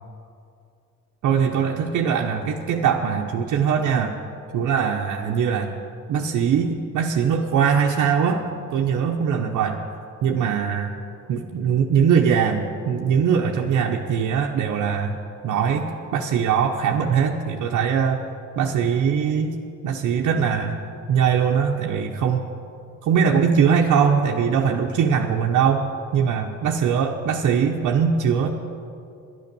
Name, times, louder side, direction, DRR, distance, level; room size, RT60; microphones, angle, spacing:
voice 1, 1.2-4.2 4.5-5.7 6.1-8.4 8.7-9.8 10.2-11.0 11.3-15.2 15.4-18.2 18.6-19.6 19.8-20.8 21.1-22.4 23.0-28.5, right 7 dB, 75° right, 0 dB, 0.9 m, -21 dB
11.0 x 10.5 x 6.8 m, 2.5 s
cardioid pair, 90°, 30 cm